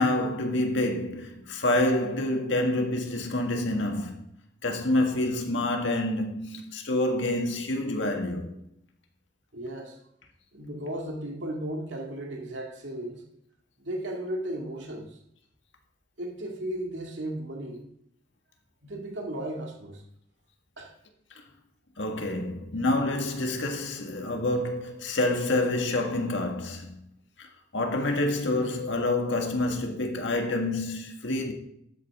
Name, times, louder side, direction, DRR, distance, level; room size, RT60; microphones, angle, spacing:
voice 1, 0.0-4.2 4.6-8.5 22.0-27.0 27.4-27.5 27.7-31.5, left 1 dB, 85° left, 1.7 m, -27 dB
voice 2, 9.5-10.0 10.5-13.2 13.8-15.2 16.2-17.9 18.8-20.0 20.8-20.9, right 1 dB, 80° right, 2.2 m, -35 dB
12.0 x 8.5 x 3.6 m
head